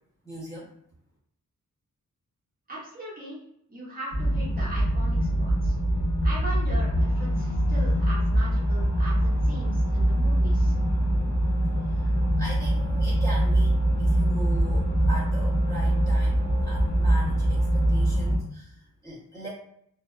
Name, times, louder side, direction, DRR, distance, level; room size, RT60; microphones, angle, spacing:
voice 1, 0.2-0.7 11.9-13.7 14.0-19.5, right 1 dB, 10° left, -8 dB, 0.9 m, -40 dB
voice 2, 2.7-3.4 3.7-5.7 6.2-10.7, right 1 dB, 25° right, -7 dB, 0.8 m, -39 dB
sound 1, 4.1-18.4, right 1 dB, 65° left, 0.9 m, -23 dB
2.7 x 2.1 x 2.3 m, 0.69 s
wide cardioid pair, 135°, 32 cm